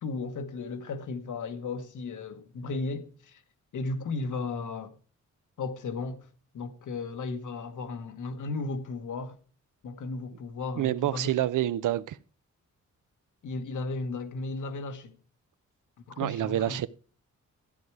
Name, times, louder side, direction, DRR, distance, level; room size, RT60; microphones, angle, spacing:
voice 1, 0.0-3.4 3.7-5.0 5.6-6.3 6.5-9.4 9.8-11.3 13.4-15.1 16.1-16.8, left 3 dB, 80° left, 1.3 m, -35 dB
voice 2, 10.8-12.2 16.2-16.9, right 13 dB, 85° right, 0.6 m, -27 dB
13.0 x 9.4 x 4.7 m
wide cardioid pair, 125°, 31 cm